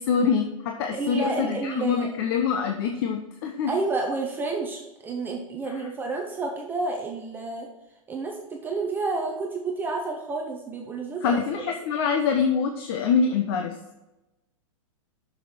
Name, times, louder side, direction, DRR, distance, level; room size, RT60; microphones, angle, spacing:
voice 1, 0.0-3.7 5.7-5.9 11.2-13.8, left 6 dB, 45° left, 4 dB, 0.9 m, -25 dB
voice 2, 0.9-2.1 3.7-7.7 8.1-11.4, right 3 dB, 10° right, 1 dB, 0.7 m, -30 dB
7.7 x 6.6 x 4.3 m, 0.97 s
supercardioid pair, 160°, 17 cm